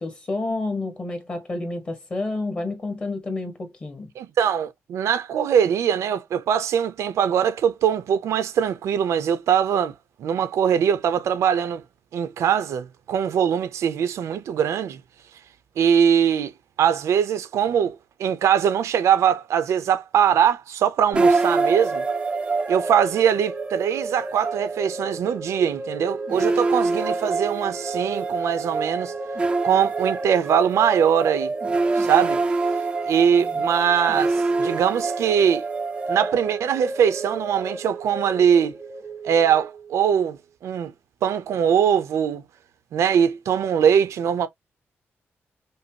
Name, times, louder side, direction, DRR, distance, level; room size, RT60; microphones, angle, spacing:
voice 1, 0.0-4.1 33.4-33.5, left 2 dB, 25° left, 1.4 m, -29 dB
voice 2, 4.2-9.9 10.2-11.8 12.1-15.0 15.8-16.5 16.8-22.0 22.7-29.1 29.6-31.5 32.0-32.4 33.1-35.7 36.1-38.7 39.2-40.9 41.2-42.4 42.9-44.5, right 8 dB, 90° right, 0.6 m, -22 dB
sound 1, 21.1-40.3, right 3 dB, 20° right, 0.4 m, -26 dB
5.3 x 2.0 x 2.8 m
wide cardioid pair, 165°, 5 cm